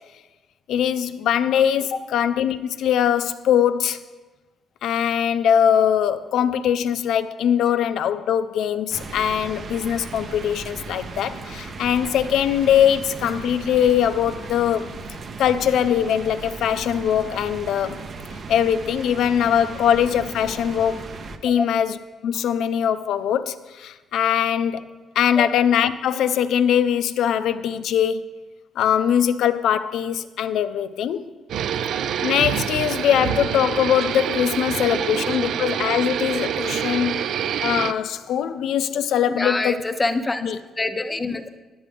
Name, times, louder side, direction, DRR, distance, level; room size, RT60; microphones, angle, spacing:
voice 1, 0.7-4.0 4.8-14.9 15.4-18.0 18.5-21.0 21.4-22.0 22.2-24.9 25.2-28.2 28.8-31.3 32.2-37.2 37.6-39.8 40.4-40.6, left 9 dB, 80° left, 13 dB, 0.4 m, -21 dB
sound 1, 8.9-21.4, right 3 dB, 50° right, 0.7 m, -36 dB
sound 2, 31.5-37.9, right 9 dB, 75° right, 0.3 m, -26 dB
voice 2, 39.4-41.6, left 2 dB, 20° left, 9 dB, 0.6 m, -26 dB
9.5 x 9.2 x 3.4 m, 1.3 s
cardioid pair, 90°, 0 cm